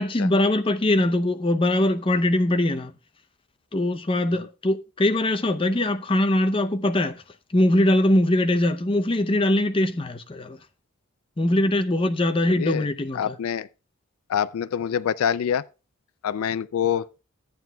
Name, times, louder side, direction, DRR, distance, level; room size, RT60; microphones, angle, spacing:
voice 1, 0.0-2.9 3.7-7.2 7.5-10.6 11.4-13.3, left 1 dB, 25° left, 0.6 m, -22 dB
voice 2, 12.5-12.9 13.1-13.7 14.3-15.6 16.2-17.1, left 8 dB, 75° left, 0.4 m, -25 dB
14.0 x 9.1 x 2.2 m
head